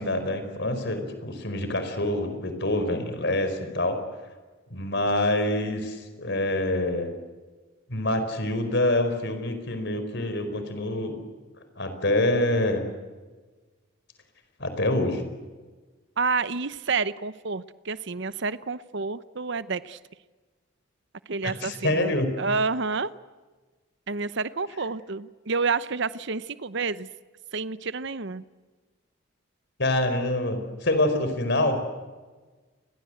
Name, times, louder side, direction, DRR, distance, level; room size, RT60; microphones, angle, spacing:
voice 1, 0.0-4.0 4.7-7.1 7.9-11.2 11.8-12.8 14.6-15.3 21.4-22.3 29.8-31.8, left 1 dB, 55° left, 8 dB, 4.7 m, -26 dB
voice 2, 16.2-20.0 21.3-23.1 24.1-27.1 27.5-28.4, right 4 dB, 55° right, 15 dB, 0.8 m, -29 dB
29.5 x 22.0 x 7.9 m, 1.3 s
head